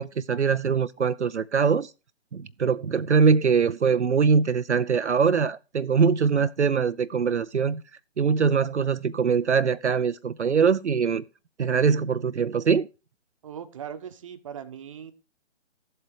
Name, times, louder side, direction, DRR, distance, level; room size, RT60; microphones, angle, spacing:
voice 1, 0.0-1.9 2.3-7.8 8.2-11.2 11.6-12.9, right 6 dB, 70° right, 0.6 m, -22 dB
voice 2, 13.4-15.1, right 8 dB, 25° right, 1.1 m, -39 dB
14.0 x 7.8 x 4.8 m
figure-of-eight pair, 140°, 36 cm